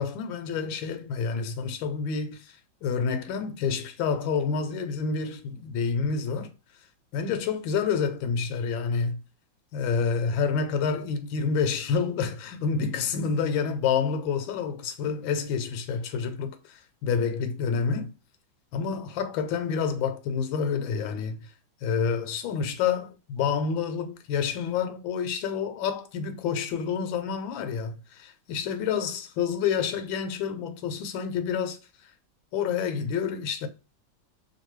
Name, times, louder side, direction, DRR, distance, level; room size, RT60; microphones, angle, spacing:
voice 1, 0.0-6.5 7.1-9.2 9.7-18.1 18.7-21.4 21.8-31.8 32.5-33.7, left 6 dB, 80° left, 1.3 m, -28 dB
3.2 x 2.6 x 3.0 m
omnidirectional pair, 2.2 m